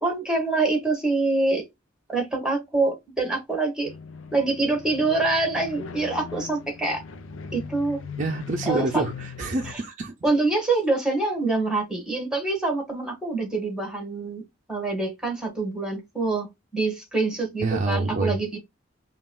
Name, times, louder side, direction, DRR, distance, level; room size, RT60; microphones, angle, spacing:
voice 1, 0.0-1.6 2.1-3.9 4.3-7.0 7.5-8.0 8.6-9.0 10.2-14.4 14.7-16.5 16.7-18.6, right 3 dB, 5° right, 1.7 m, -25 dB
sound 1, 3.9-9.7, left 6 dB, 80° left, 0.6 m, -39 dB
voice 2, 8.2-10.1 17.6-18.4, right 3 dB, 40° right, 0.5 m, -27 dB
5.5 x 2.4 x 2.3 m
head